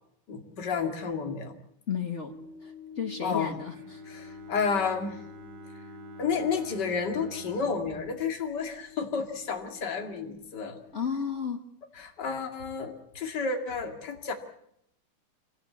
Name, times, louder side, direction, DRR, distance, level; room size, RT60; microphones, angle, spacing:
voice 1, 0.3-1.5 3.2-3.6 4.1-5.2 6.2-10.8 12.0-14.3, left 5 dB, 35° left, 4 dB, 2.5 m, -31 dB
voice 2, 1.9-4.0 10.9-11.7, left 7 dB, 55° left, 4 dB, 0.8 m, -33 dB
sound 1, 2.3-11.4, left 6 dB, 40° right, 3.8 m, -49 dB
Bowed string instrument, 3.6-9.6, right 4 dB, 65° right, 2.9 m, -50 dB
25.5 x 18.0 x 8.3 m, 0.77 s
omnidirectional pair, 3.6 m